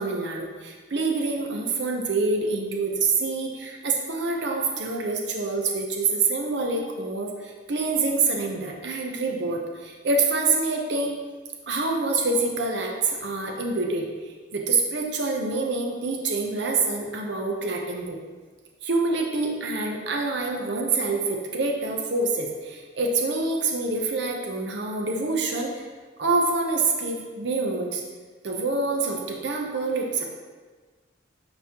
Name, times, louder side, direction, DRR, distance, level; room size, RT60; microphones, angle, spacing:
voice 1, 0.0-11.2 11.7-14.1 14.5-18.2 18.8-25.9 26.2-28.0 28.4-30.2, right 3 dB, 65° right, 1 dB, 0.8 m, -26 dB
9.5 x 3.9 x 2.9 m, 1.4 s
head